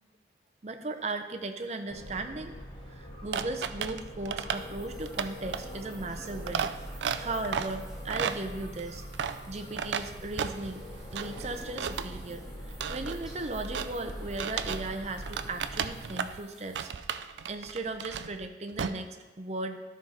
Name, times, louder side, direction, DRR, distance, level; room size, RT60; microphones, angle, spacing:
voice 1, 0.6-2.5 2.9-9.0 9.5-10.8 11.1-17.1 17.5-19.8, right 2 dB, 40° right, 6 dB, 0.6 m, -37 dB
sound 1, 1.9-15.9, equal, 25° left, 1.2 m, -43 dB
sound 2, 3.3-14.9 15.2-16.4 16.8-18.5 18.7-18.9, right 7 dB, 85° right, 0.4 m, -35 dB
sound 3, 4.5-16.9, right 1 dB, 5° right, 1.3 m, -56 dB
12.5 x 4.6 x 4.2 m, 1.3 s
head